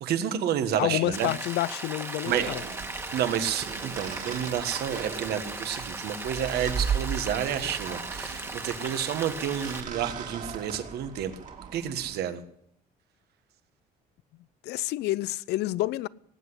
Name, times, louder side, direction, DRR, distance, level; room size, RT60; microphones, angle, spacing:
voice 1, 0.0-1.3 2.2-2.6 3.1-11.3 11.7-12.4, right 9 dB, 70° right, 1.6 m, -30 dB
voice 2, 0.8-2.6 14.6-16.1, left 16 dB, 80° left, 0.5 m, -28 dB
Rain, 1.1-9.8, right 2 dB, 15° right, 1.6 m, -37 dB
sound 1, 2.3-12.2, right 6 dB, 45° right, 2.5 m, -37 dB
19.0 x 8.0 x 8.0 m
cardioid pair, 110°, 17 cm